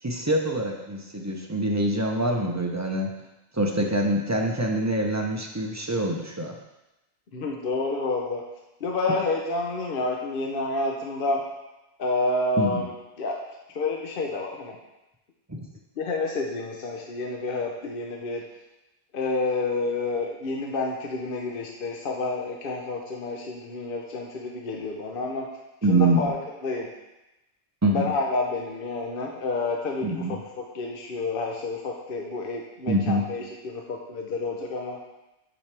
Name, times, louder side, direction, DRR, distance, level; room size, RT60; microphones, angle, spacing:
voice 1, 0.0-3.1 3.5-6.5 12.6-12.8 15.5-15.6 25.8-26.3 27.8-28.1 30.0-30.4 32.9-33.3, right 1 dB, 20° right, 1 dB, 0.5 m, -25 dB
voice 2, 7.3-8.4 8.8-11.4 12.0-12.9 13.2-13.4 13.7-14.8 16.0-18.5 19.1-25.5 25.9-26.4 26.6-26.9 27.9-35.0, left 3 dB, 50° left, 1 dB, 0.8 m, -29 dB
8.6 x 5.0 x 3.3 m, 0.96 s
omnidirectional pair, 1.3 m